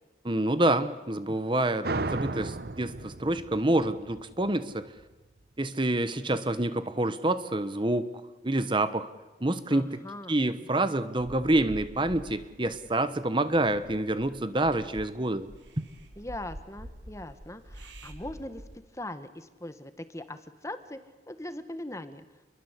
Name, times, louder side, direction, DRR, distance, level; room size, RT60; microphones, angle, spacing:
voice 1, 0.2-4.9 5.6-8.1 8.4-9.1 9.4-10.0 10.3-15.5 15.8-15.9, right 1 dB, 25° right, 12 dB, 1.1 m, -27 dB
sound 1, 1.8-5.1, right 3 dB, 55° right, 0.9 m, -35 dB
voice 2, 9.7-10.4 16.2-18.6 18.9-21.0 21.3-22.2, left 1 dB, 15° left, 11 dB, 1.5 m, -40 dB
sound 2, 11.2-18.8, equal, 80° right, 3.6 m, -47 dB
29.0 x 23.0 x 8.3 m, 1.2 s
head